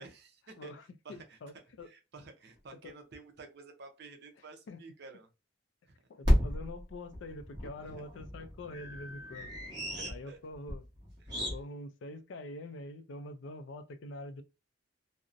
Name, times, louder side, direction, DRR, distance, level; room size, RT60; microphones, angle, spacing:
voice 1, 0.0-0.7 1.0-1.4 1.8-5.3 5.9-6.0 7.8-8.0 9.9-10.4 11.2-11.4, right 3 dB, 55° right, 0.5 m, -51 dB
voice 2, 0.6-1.9 2.8-3.0 4.7-4.9 6.1-9.5 10.1-10.9 11.5-14.4, left 1 dB, 65° left, 0.3 m, -45 dB
sound 1, 1.8-1.9 2.6-2.7 2.9-3.0 6.2-11.6, equal, 20° right, 0.9 m, -33 dB
2.5 x 2.0 x 2.4 m
head